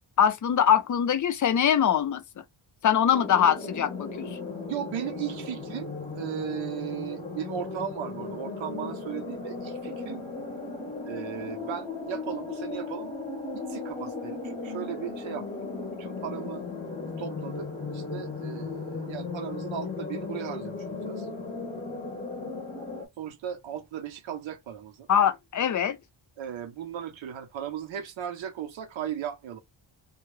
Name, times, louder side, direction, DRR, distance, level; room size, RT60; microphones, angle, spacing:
voice 1, 0.2-2.2 2.8-4.4 25.1-26.0, left 9 dB, 45° left, 0.4 m, -23 dB
sound 1, 3.1-23.1, left 3 dB, 15° left, 0.7 m, -36 dB
voice 2, 4.6-10.2 11.0-13.1 13.5-15.7 16.0-16.7 17.0-17.7 17.9-21.3 23.2-25.1 26.4-29.6, right 10 dB, 80° right, 0.6 m, -36 dB
2.2 x 2.0 x 3.1 m
wide cardioid pair, 125°, 46 cm